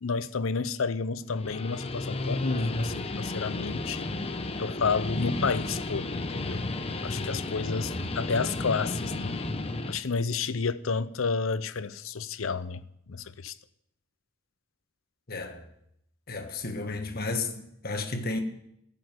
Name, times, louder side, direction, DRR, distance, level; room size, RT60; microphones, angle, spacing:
voice 1, 0.0-4.1 4.6-6.7 7.0-9.4 9.9-12.8 13.1-13.5, left 4 dB, 80° left, 0.7 m, -30 dB
Guitar, 1.2-10.0, left 2 dB, 30° left, 0.9 m, -33 dB
voice 2, 15.3-15.7 16.3-18.4, left 3 dB, 50° left, 1.5 m, -33 dB
14.5 x 7.1 x 9.2 m
head